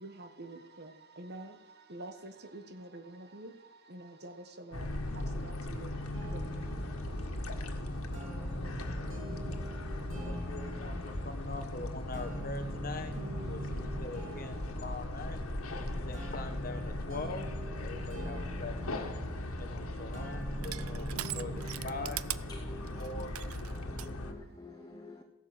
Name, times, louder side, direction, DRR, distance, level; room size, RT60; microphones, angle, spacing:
voice 1, 0.0-0.9 1.2-1.5 1.9-3.5 3.9-4.3 4.7-4.8 5.8-5.9, right 2 dB, 50° right, 8 dB, 1.4 m, -46 dB
sound 1, 4.7-24.3, left 1 dB, 90° left, 1.7 m, -38 dB
sound 2, 6.1-22.1, right 1 dB, 65° right, 4.5 m, -45 dB
voice 2, 10.1-15.5 16.0-17.5 17.8-19.2 19.6-22.2 23.0-23.3 24.1-24.3, left 3 dB, 40° left, 7 dB, 1.5 m, -43 dB
Crushing, 19.2-24.1, right 14 dB, 80° right, 0.5 m, -42 dB
voice 3, 22.5-23.3 23.6-25.2, left 2 dB, 15° left, 4 dB, 1.0 m, -48 dB
15.0 x 11.0 x 7.7 m, 0.98 s
head